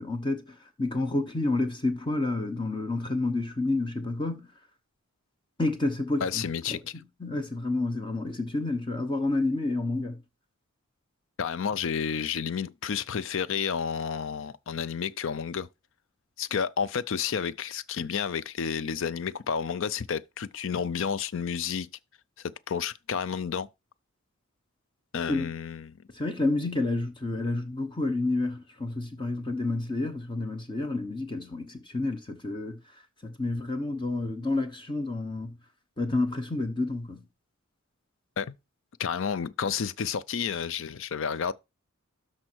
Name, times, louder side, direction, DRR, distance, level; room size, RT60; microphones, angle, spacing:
voice 1, 0.0-4.5 5.6-6.8 7.2-10.2 25.3-25.5 26.1-32.8 33.2-35.5 36.0-37.2, left 2 dB, 20° left, 0.9 m, -29 dB
voice 2, 6.2-7.0 11.4-15.7 16.4-21.9 22.4-23.7 25.1-25.9 38.4-38.5 39.0-41.5, left 7 dB, 60° left, 0.5 m, -31 dB
12.5 x 4.3 x 4.5 m
head